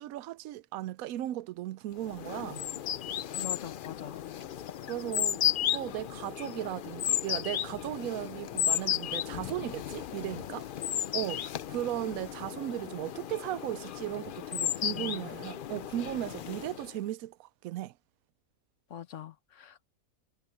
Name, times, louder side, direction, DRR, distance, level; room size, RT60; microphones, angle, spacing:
voice 1, 0.0-2.6 4.9-5.4 5.7-10.7 11.1-11.4 11.7-17.9, right 14 dB, 75° right, 1.0 m, -36 dB
sound 1, 2.0-17.0, left 10 dB, 75° left, 0.4 m, -34 dB
voice 2, 3.4-4.2 14.7-15.4 18.9-19.8, left 10 dB, 60° left, 1.3 m, -44 dB
omnidirectional pair, 1.5 m